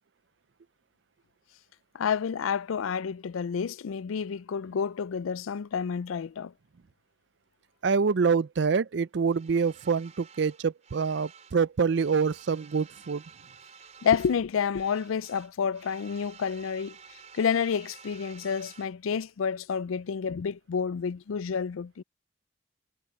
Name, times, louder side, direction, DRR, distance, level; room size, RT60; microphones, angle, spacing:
voice 1, 1.9-6.5 14.0-17.0 17.3-22.0, left 6 dB, 90° left, 0.4 m, -29 dB
voice 2, 7.8-13.2, right 5 dB, 60° right, 0.4 m, -26 dB
sound 1, 9.3-11.6 11.9-14.4 14.7-18.9, right 6 dB, 35° right, 5.4 m, -52 dB
head